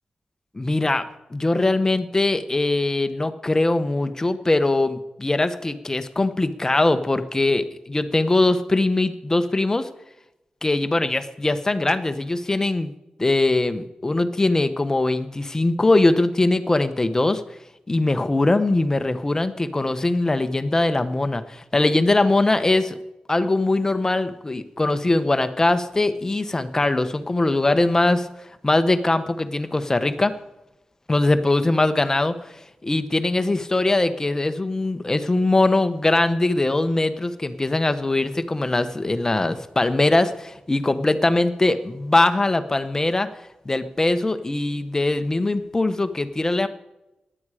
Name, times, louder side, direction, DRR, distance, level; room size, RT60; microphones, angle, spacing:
voice 1, 0.5-1.1 1.3-9.9 10.6-12.9 13.2-17.4 17.9-23.0 23.3-28.3 28.6-30.3 31.1-32.4 32.8-43.3 43.6-46.7, left 2 dB, 20° left, 10 dB, 1.0 m, -21 dB
17.5 x 11.0 x 4.9 m, 0.92 s
wide cardioid pair, 135°, 2 cm